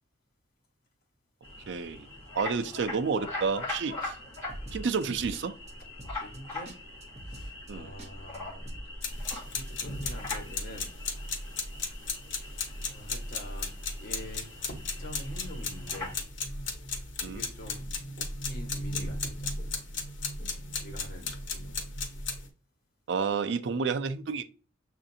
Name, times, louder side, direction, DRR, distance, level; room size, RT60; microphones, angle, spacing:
sound 1, 1.4-16.2, left 2 dB, 15° left, 1.7 m, -42 dB
voice 1, 1.7-2.1 2.4-4.1 4.7-5.5 7.7-7.9 17.2-17.4 23.1-24.4, right 5 dB, 70° right, 0.4 m, -30 dB
sound 2, 4.3-5.4 5.7-5.8 6.0-6.4 6.7-6.8 7.0-7.7 8.0-8.1 8.3-8.4 8.7-9.1 9.3-10.2, right 1 dB, 35° right, 0.7 m, -44 dB
voice 2, 6.2-6.7 7.2-8.8 9.1-10.9 12.4-13.7 14.0-16.2 17.2-17.8 18.2-19.5 20.8-21.8, equal, 50° left, 1.2 m, -46 dB
sound 3, 9.0-22.5, left 3 dB, 80° left, 0.9 m, -36 dB
6.4 x 2.5 x 2.7 m
head